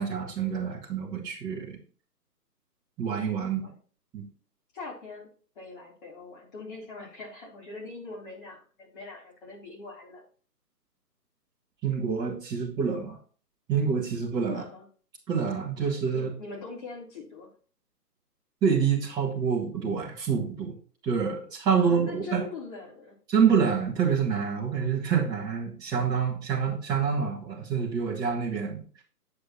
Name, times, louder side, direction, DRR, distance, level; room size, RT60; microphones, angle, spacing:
voice 1, 0.0-1.8 3.0-3.7 4.1-4.2 11.8-13.2 13.7-14.6 15.3-16.3 18.6-20.7 21.0-22.4 23.3-28.8, right 6 dB, 10° right, -5 dB, 1.7 m, -27 dB
voice 2, 4.7-5.3 5.6-10.2 14.5-14.9 16.1-17.5 21.8-23.2, left 3 dB, 30° left, -3 dB, 3.7 m, -42 dB
8.6 x 7.6 x 3.1 m, 0.41 s
figure-of-eight pair, 150°, 48 cm